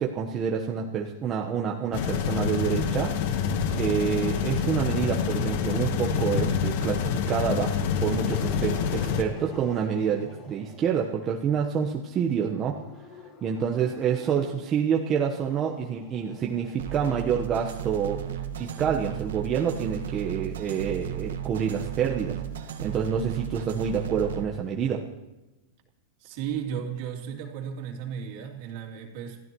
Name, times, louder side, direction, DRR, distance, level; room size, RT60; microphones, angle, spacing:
voice 1, 0.0-3.1 3.8-12.8 13.4-18.2 18.6-22.4 22.8-25.0, right 7 dB, 30° right, 0 dB, 1.2 m, -27 dB
sound 1, 1.9-9.2, left 7 dB, 60° left, 1.3 m, -27 dB
Growling, 5.0-6.7 7.2-11.4 12.4-18.9, left 2 dB, 35° left, 4.2 m, -46 dB
sound 2, 16.8-24.4, right 10 dB, 85° right, 1.6 m, -35 dB
voice 2, 26.2-29.4, right 8 dB, 55° right, 2 dB, 2.9 m, -34 dB
27.0 x 15.0 x 3.1 m, 1.0 s
supercardioid pair, 135°, 0 cm